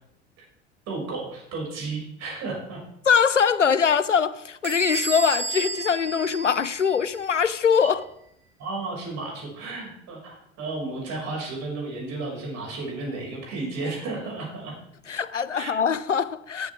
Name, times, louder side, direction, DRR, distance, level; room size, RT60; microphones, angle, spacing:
voice 1, 0.9-2.8 7.8-7.9 8.6-14.7 15.5-15.7, right 3 dB, 45° right, 6.2 m, -33 dB
voice 2, 3.1-8.0 15.1-16.7, left 6 dB, 90° left, 0.6 m, -22 dB
Bell / Squeak, 4.6-7.2, right 3 dB, 30° right, 5.2 m, -32 dB
14.5 x 12.0 x 3.6 m
figure-of-eight pair, 70°, 36 cm